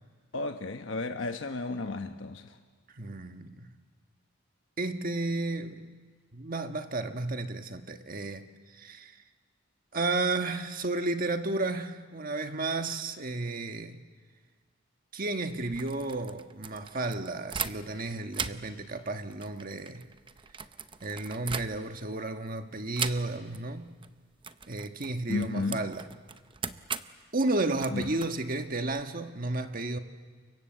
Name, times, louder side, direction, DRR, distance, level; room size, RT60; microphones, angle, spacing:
voice 1, 0.3-2.6 25.3-25.9 27.9-28.0, left 3 dB, 75° left, 6 dB, 1.0 m, -33 dB
voice 2, 2.9-3.8 4.8-5.9 6.3-9.2 9.9-14.0 15.1-20.1 21.0-23.9 24.7-26.1 27.3-30.0, right 2 dB, 45° right, 6 dB, 1.4 m, -32 dB
sound 1, 15.6-18.0 18.3-22.1 22.9-23.6 23.9-24.1 24.4-29.0, right 6 dB, 25° right, 0.7 m, -39 dB
29.5 x 25.0 x 7.9 m, 1.5 s
head